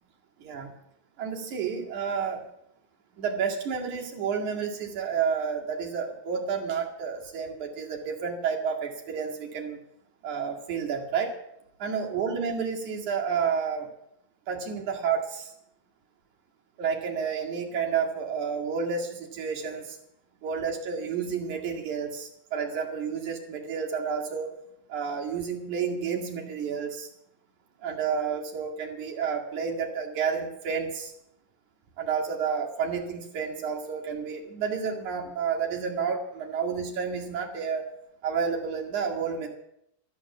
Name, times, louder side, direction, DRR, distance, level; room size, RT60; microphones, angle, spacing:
voice 1, 0.4-0.7 1.2-2.4 3.2-9.8 10.2-11.4 11.8-13.9 14.5-15.5 16.8-20.0 20.4-24.6 24.9-27.1 27.8-31.1 32.0-37.9 38.2-39.5, right 6 dB, 60° right, 0 dB, 3.5 m, -30 dB
12.5 x 12.0 x 7.3 m, 0.78 s
omnidirectional pair, 4.1 m